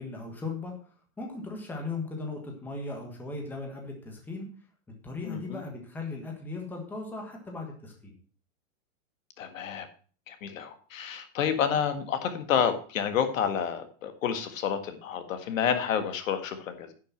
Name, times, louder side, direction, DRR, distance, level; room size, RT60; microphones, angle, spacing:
voice 1, 0.0-4.5 5.0-8.1, left 3 dB, 5° left, 1 dB, 1.4 m, -37 dB
voice 2, 5.2-5.6 9.4-9.9 10.3-16.9, left 8 dB, 70° left, 9 dB, 1.8 m, -29 dB
10.5 x 6.6 x 5.8 m, 0.42 s
supercardioid pair, 175°, 40 cm